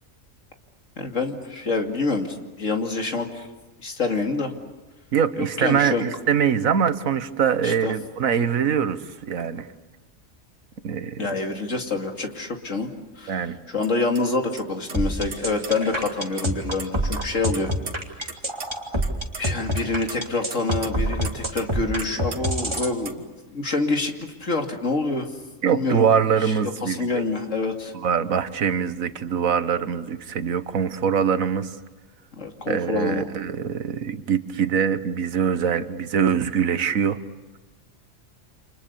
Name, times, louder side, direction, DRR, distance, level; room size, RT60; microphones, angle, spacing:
voice 1, 1.0-3.5 3.8-4.5 5.4-6.0 7.6-7.9 11.2-12.9 13.2-13.4 13.7-17.7 19.4-24.1 24.4-25.3 25.7-26.1 26.4-26.5 26.8-27.9 32.4-33.2, left 3 dB, 70° left, 4 dB, 2.9 m, -26 dB
voice 2, 5.1-9.7 10.8-11.3 13.3-13.6 25.6-27.2 27.9-31.8 32.7-37.2, right 7 dB, 90° right, 12 dB, 1.6 m, -23 dB
sound 1, 13.8-13.9 14.2-14.3 14.6-14.7 14.9-15.7 16.0-16.5 16.8-18.4 18.6-18.7 19.0-19.4 19.8-21.7 22.0-22.4 22.7-23.2, right 4 dB, 65° right, 2.0 m, -36 dB
sound 2, 14.9-22.9, equal, 20° right, 2.9 m, -25 dB
29.5 x 27.0 x 6.9 m, 1.2 s
omnidirectional pair, 1.4 m